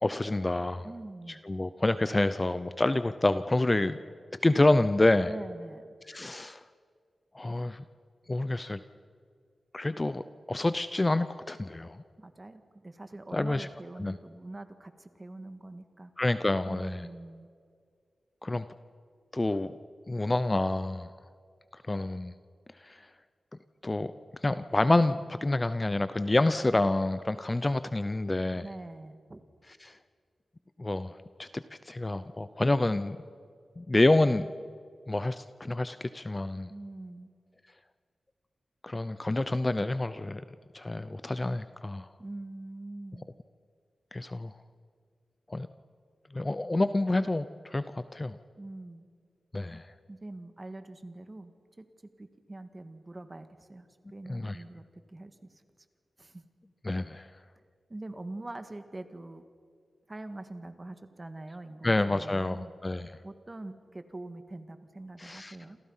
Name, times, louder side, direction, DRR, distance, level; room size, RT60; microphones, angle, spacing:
voice 1, 0.0-0.9 1.4-4.0 4.4-5.3 6.1-6.6 7.3-7.8 8.3-8.8 9.7-10.2 10.5-12.0 13.3-13.7 14.0-14.2 16.2-17.0 18.4-18.7 19.3-19.8 20.1-21.1 21.9-22.3 22.8-23.0 23.8-24.1 24.4-28.6 29.8-30.0 30.8-33.2 33.8-34.5 35.1-36.7 38.8-40.4 40.7-42.1 44.1-44.5 45.5-45.7 46.3-48.4 49.5-49.8 54.3-54.6 56.8-57.3 61.8-63.1 65.2-65.6, left 2 dB, 20° left, 12 dB, 0.6 m, -28 dB
voice 2, 0.8-1.4 5.3-5.9 12.2-16.1 16.6-17.5 28.6-29.4 36.7-37.3 42.2-43.3 48.6-49.1 49.7-49.8 50.1-51.5 51.8-51.9 52.2-55.6 56.2-56.4 57.9-59.4 60.1-62.7 63.2-65.8, right 2 dB, 25° right, 8 dB, 1.7 m, -44 dB
28.5 x 27.5 x 5.7 m, 2.1 s
wide cardioid pair, 140°, 0 cm